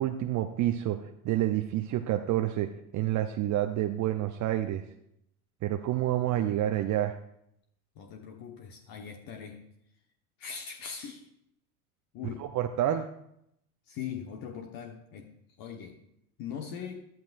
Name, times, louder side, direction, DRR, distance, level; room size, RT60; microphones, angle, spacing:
voice 1, 0.0-4.8 5.6-7.2 12.4-13.1, right 13 dB, 40° right, 6 dB, 0.8 m, -28 dB
voice 2, 7.9-9.6 10.4-11.3 12.1-12.4 13.9-15.3 15.6-16.0 16.4-17.1, left 7 dB, 50° left, 3 dB, 1.4 m, -40 dB
14.0 x 11.5 x 2.6 m, 0.75 s
hypercardioid pair, 75°, 46 cm